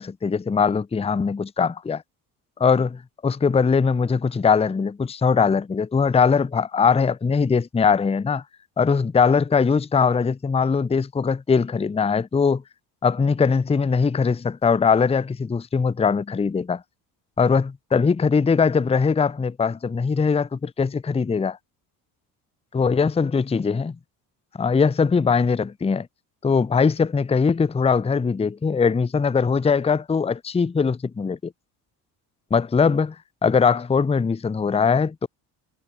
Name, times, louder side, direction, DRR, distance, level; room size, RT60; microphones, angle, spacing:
voice 1, 0.0-2.0 2.6-8.4 8.8-12.6 13.0-16.8 17.4-21.6 22.7-24.0 24.6-26.1 26.4-31.5 32.5-33.2 33.4-35.3, left 5 dB, 15° left, 0.6 m, -21 dB
hypercardioid pair, 60°, 48 cm